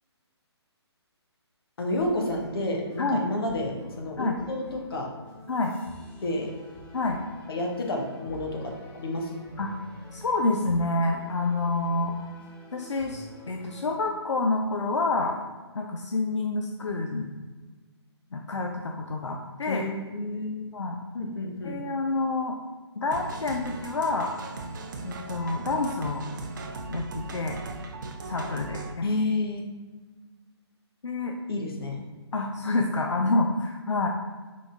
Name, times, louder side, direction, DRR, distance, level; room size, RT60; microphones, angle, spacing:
voice 1, 1.8-5.1 6.2-6.5 7.5-9.4 19.7-20.6 21.1-21.8 29.0-29.6 31.5-32.0, left 2 dB, 55° left, 1 dB, 1.0 m, -30 dB
sound 1, 1.8-13.9, left 1 dB, 10° left, 0.6 m, -48 dB
voice 2, 10.1-12.3 12.7-15.4 15.8-17.3 18.3-19.9 20.7-21.0 21.6-22.5 23.0-24.3 25.0-26.2 26.9-27.6 28.3-29.1 31.0-31.3 32.3-34.1, left 3 dB, 85° left, 2 dB, 0.5 m, -28 dB
sound 2, 23.1-28.9, right 3 dB, 45° right, 0.4 m, -38 dB
3.8 x 3.5 x 3.6 m, 1.3 s
figure-of-eight pair, 145°, 15 cm